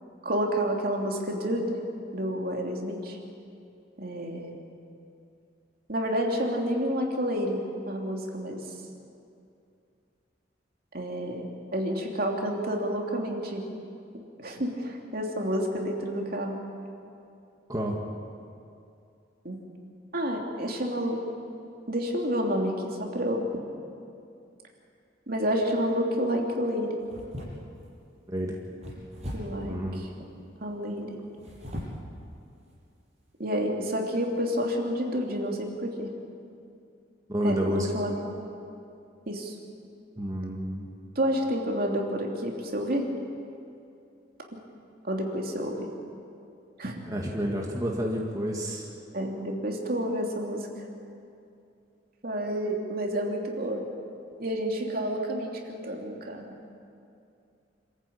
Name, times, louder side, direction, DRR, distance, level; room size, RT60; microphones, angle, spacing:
voice 1, 0.2-1.8 2.1-3.2 4.0-4.6 5.9-7.6 7.9-8.6 10.9-11.5 11.7-13.6 14.4-16.6 19.4-19.6 20.1-21.2 21.9-23.5 25.3-27.0 29.3-29.8 30.6-31.2 33.4-36.1 37.4-38.4 39.3-39.5 41.1-43.1 45.1-45.9 46.8-47.0 49.1-50.9 52.2-53.8 54.4-56.5, equal, 55° right, 1 dB, 2.9 m, -29 dB
sound 1, 25.6-26.0 27.0-27.9 28.8-29.7 31.3-32.1 32.6-32.8 33.3-33.4, equal, 35° right, 6.7 m, -39 dB
voice 2, 29.6-30.0 37.3-37.9 40.2-40.8 47.1-48.9, equal, 20° right, -1 dB, 2.0 m, -30 dB
27.0 x 14.5 x 8.7 m, 2.6 s
head